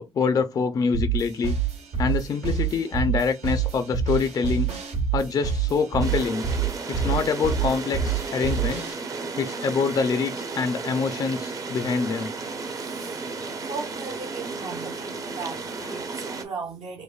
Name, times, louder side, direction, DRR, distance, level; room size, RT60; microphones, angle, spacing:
voice 1, 0.0-1.6 2.0-4.7 5.1-6.5 6.9-9.0 9.4-12.3, left 5 dB, 35° left, 0.4 m, -25 dB
sound 1, 0.9-8.9, right 7 dB, 80° right, 2.3 m, -27 dB
sound 2, 6.0-16.4, right 4 dB, 30° right, 0.6 m, -34 dB
voice 2, 12.6-17.0, right 4 dB, 65° right, 0.8 m, -38 dB
5.0 x 2.1 x 2.3 m
cardioid pair, 150°, 11 cm